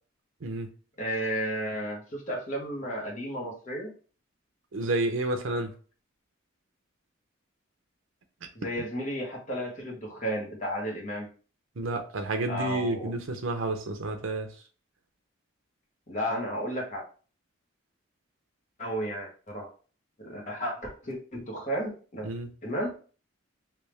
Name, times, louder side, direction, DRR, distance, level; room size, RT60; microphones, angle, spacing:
voice 1, 1.0-3.9 8.5-11.3 12.5-13.1 16.1-17.1 18.8-19.7 20.2-22.3 22.6-22.9, equal, 35° left, 1.2 m, -33 dB
voice 2, 4.7-5.7 8.8-8.9 11.8-14.6 22.2-22.5, right 2 dB, 85° right, 0.7 m, -30 dB
3.4 x 2.8 x 3.1 m
head